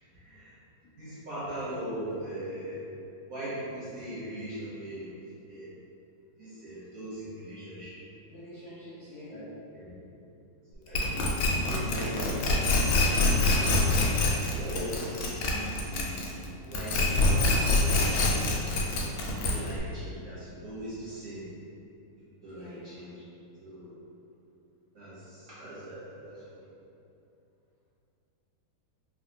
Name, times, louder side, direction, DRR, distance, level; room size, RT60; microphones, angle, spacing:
voice 1, 0.1-0.6 1.0-2.8 3.3-5.1 5.5-5.7 6.4-8.0 9.3-9.4 9.7-9.9 10.7-12.6 14.4-19.0 19.3-21.5 22.4-23.2 23.6-23.9 24.9-26.6, right 1 dB, 60° right, -11 dB, 0.9 m, -40 dB
voice 2, 8.3-9.4 22.5-22.9, left 1 dB, 70° left, -11 dB, 0.8 m, -46 dB
sound 1, 10.9-16.4 16.7-19.8, left 2 dB, 85° left, 1.4 m, -25 dB
3.4 x 2.4 x 2.6 m, 2.7 s
omnidirectional pair, 2.1 m